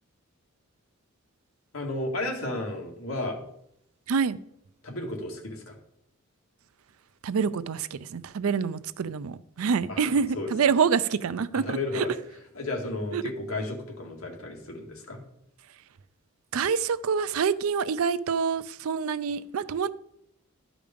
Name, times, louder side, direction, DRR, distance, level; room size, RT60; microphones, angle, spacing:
voice 1, 1.7-3.4 4.8-5.7 9.9-10.5 11.5-12.1 12.5-15.2, left 2 dB, 75° left, 1.9 m, -33 dB
voice 2, 7.2-12.0 13.1-13.2 16.5-19.9, right 6 dB, 80° right, 0.4 m, -26 dB
12.0 x 5.0 x 5.1 m
head